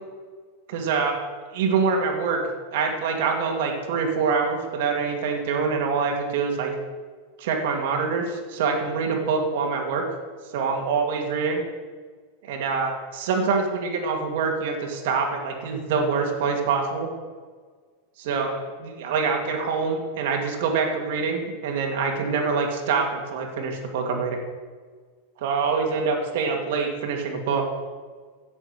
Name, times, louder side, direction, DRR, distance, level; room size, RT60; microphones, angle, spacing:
voice 1, 0.7-1.2 1.5-2.4 2.7-6.7 7.4-10.0 10.5-11.6 12.4-17.1 18.2-24.4 25.4-27.6, right 5 dB, 60° right, 2 dB, 2.4 m, -25 dB
16.0 x 7.0 x 6.7 m, 1.5 s
supercardioid pair, 165°, 0 cm